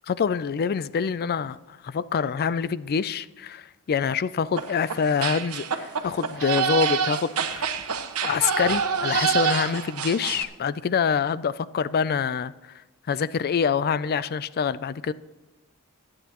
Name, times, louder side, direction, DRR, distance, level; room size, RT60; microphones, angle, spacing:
voice 1, 0.1-7.7 8.2-12.5 13.1-15.1, left 6 dB, 45° left, 0.4 m, -26 dB
sound 1, 4.6-10.4, right 7 dB, 90° right, 1.1 m, -27 dB
21.5 x 8.9 x 3.0 m
head